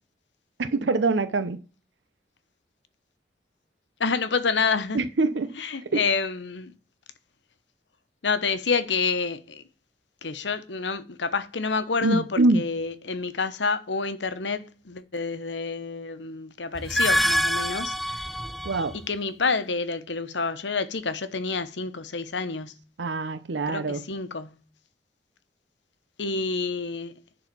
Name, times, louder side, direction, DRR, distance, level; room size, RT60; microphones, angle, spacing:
voice 1, 0.6-1.6 4.9-5.5 5.8-6.0 12.0-12.6 18.6-18.9 23.0-24.0, right 3 dB, 90° right, 0.7 m, -24 dB
voice 2, 4.0-5.0 5.6-6.7 8.2-9.6 10.2-18.3 19.0-22.7 23.7-24.6 26.2-27.1, left 4 dB, 90° left, 1.0 m, -28 dB
sound 1, 16.8-19.0, equal, ahead, 0.3 m, -26 dB
10.5 x 3.9 x 6.0 m
head